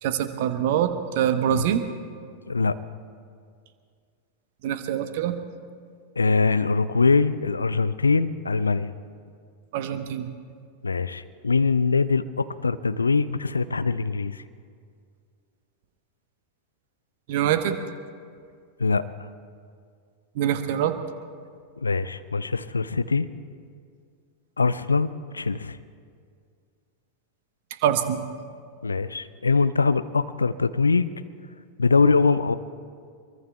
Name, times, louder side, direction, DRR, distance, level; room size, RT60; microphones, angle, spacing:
voice 1, 0.0-1.8 4.6-5.4 9.7-10.3 17.3-17.8 20.3-20.9 27.8-28.2, right 10 dB, 50° right, 9 dB, 1.0 m, -24 dB
voice 2, 6.2-8.9 10.8-14.4 18.8-19.0 21.8-23.3 24.6-25.8 28.8-31.1 31.8-32.6, left 4 dB, 75° left, 14 dB, 0.5 m, -22 dB
24.0 x 23.0 x 2.3 m, 2.1 s
figure-of-eight pair, 90°, 0 cm